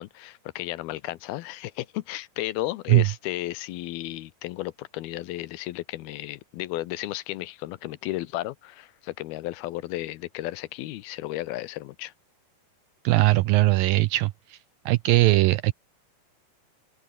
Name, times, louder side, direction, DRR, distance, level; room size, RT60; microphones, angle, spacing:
voice 1, 0.0-12.1, left 17 dB, 75° left, 2.6 m, -34 dB
voice 2, 13.0-14.6 14.9-15.7, right 18 dB, 80° right, 2.1 m, -20 dB
open air
omnidirectional pair, 4.6 m